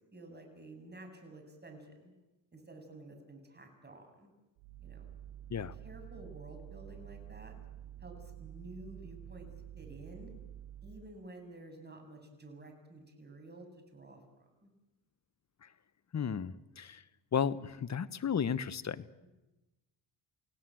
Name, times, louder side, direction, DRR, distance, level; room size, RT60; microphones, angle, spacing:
voice 1, 0.1-2.1 2.5-4.3 4.8-5.1 5.8-7.5 8.0-10.3 10.8-14.7, right 2 dB, 20° right, 4 dB, 7.6 m, -51 dB
sound 1, 4.6-11.1, right 11 dB, 85° right, 4.8 m, -49 dB
voice 2, 16.1-17.0 17.3-19.1, left 7 dB, 35° left, 16 dB, 1.3 m, -34 dB
28.5 x 17.5 x 7.8 m, 1.0 s
supercardioid pair, 70°, 46 cm